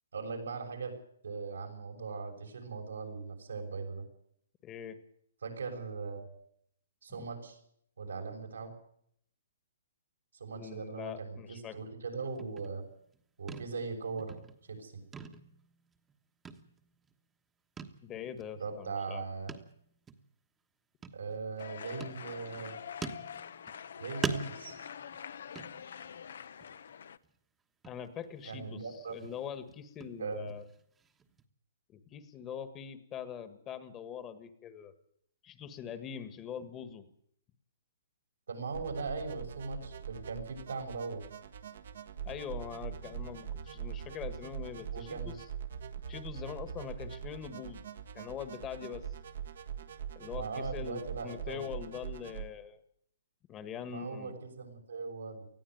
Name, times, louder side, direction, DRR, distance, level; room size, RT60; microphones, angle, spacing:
voice 1, 0.1-1.0 1.2-4.0 5.4-6.3 7.0-7.6 8.0-8.7 10.3-12.9 13.4-14.4 14.7-15.0 18.5-19.5 21.1-22.7 24.0-24.8 28.4-29.1 30.2-30.5 38.5-41.3 44.9-45.4 50.3-51.7 53.9-55.5, right 4 dB, 90° right, 2 dB, 6.4 m, -39 dB
voice 2, 4.6-5.0 10.5-11.8 18.0-19.2 27.8-28.8 29.1-30.6 31.9-34.9 35.4-37.1 42.2-45.4 46.1-47.8 48.1-49.1 50.1-52.8 53.5-54.3, left 8 dB, 20° left, 11 dB, 1.5 m, -43 dB
sound 1, 12.4-13.2 13.5-13.9 14.2-14.8 15.1-16.2 16.5-17.1 17.8-18.0 18.4-18.5 19.5-19.8 20.1-20.2 21.0-21.6 22.0-22.7 23.0-23.9 24.2-26.2 26.6-26.9 27.2-27.3 27.8-28.6 28.9-31.4, right 5 dB, 10° right, 1.3 m, -43 dB
sound 2, 21.6-27.2, left 7 dB, 70° left, 0.9 m, -45 dB
sound 3, 38.7-52.4, right 8 dB, 65° right, 1.6 m, -43 dB
20.0 x 14.0 x 9.4 m, 0.70 s
hypercardioid pair, 155°, 0 cm